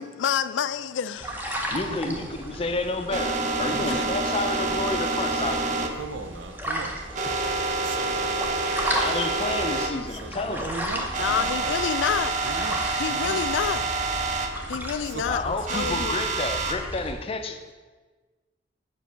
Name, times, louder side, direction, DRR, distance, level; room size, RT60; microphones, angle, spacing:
voice 1, 0.0-1.4 3.8-4.0 9.1-9.3 11.2-12.4 13.0-13.9 14.7-16.2, left 8 dB, 85° left, 14 dB, 0.3 m, -28 dB
sound 1, 1.2-17.1, equal, 10° right, 0.7 m, -35 dB
voice 2, 1.7-6.0 8.9-10.7 15.3-17.7, left 3 dB, 30° left, 7 dB, 0.5 m, -30 dB
sound 2, 2.0-9.9 10.2-10.3 10.7-10.8 11.1-14.5 15.7-16.7, right 3 dB, 45° right, 0.6 m, -28 dB
voice 3, 3.6-4.2 5.8-7.0 7.8-8.4 10.1-11.8 12.4-13.4 15.0-15.2, right 3 dB, 90° right, 8 dB, 0.6 m, -38 dB
5.4 x 5.1 x 5.7 m, 1.3 s
head